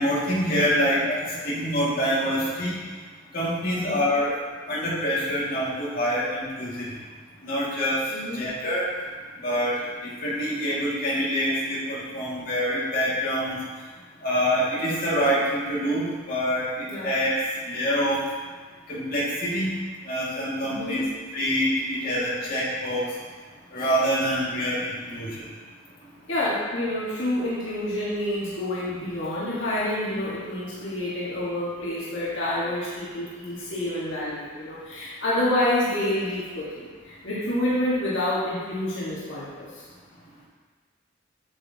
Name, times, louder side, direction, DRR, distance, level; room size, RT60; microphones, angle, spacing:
voice 1, 0.0-2.8 3.3-4.3 4.7-6.9 7.4-8.0 8.3-8.8 9.4-9.7 10.0-13.6 14.2-17.3 17.7-18.2 18.9-19.7 20.1-21.0 21.3-23.1 23.7-25.4, equal, 45° left, -8 dB, 2.1 m, -25 dB
voice 2, 3.7-4.1 8.1-8.5 16.9-17.1 20.6-21.0 26.3-39.8, left 1 dB, 75° left, -9 dB, 1.6 m, -28 dB
8.3 x 6.7 x 2.8 m, 1.4 s
head